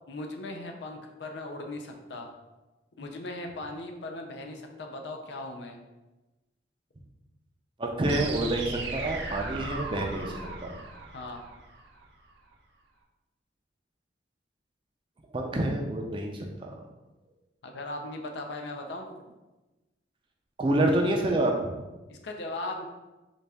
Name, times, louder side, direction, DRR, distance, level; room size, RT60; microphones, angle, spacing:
voice 1, 0.1-2.3 3.0-5.8 11.1-11.4 17.6-19.2 22.1-22.8, left 2 dB, 75° left, 3 dB, 0.5 m, -38 dB
voice 2, 7.8-10.7 15.3-16.8 20.6-21.8, right 1 dB, 30° right, 2 dB, 0.4 m, -28 dB
sound 1, 8.0-12.0, right 3 dB, 80° right, 0.6 m, -37 dB
4.0 x 2.3 x 3.3 m, 1.1 s
head